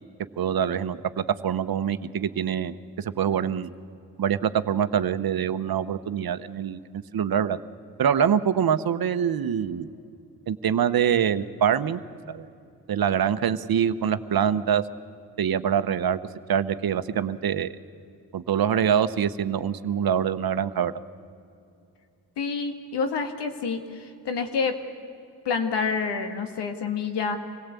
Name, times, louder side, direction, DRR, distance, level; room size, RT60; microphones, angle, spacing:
voice 1, 0.4-3.7 4.2-7.6 8.0-9.9 10.5-12.0 12.3-12.5 12.9-14.8 15.4-16.2 16.5-17.7 18.3-20.9, right 8 dB, 60° right, 12 dB, 1.0 m, -24 dB
voice 2, 22.4-24.8 25.5-27.4, left 5 dB, 90° left, 6 dB, 1.9 m, -28 dB
25.5 x 17.5 x 8.3 m, 2.5 s
cardioid pair, 70°, 40 cm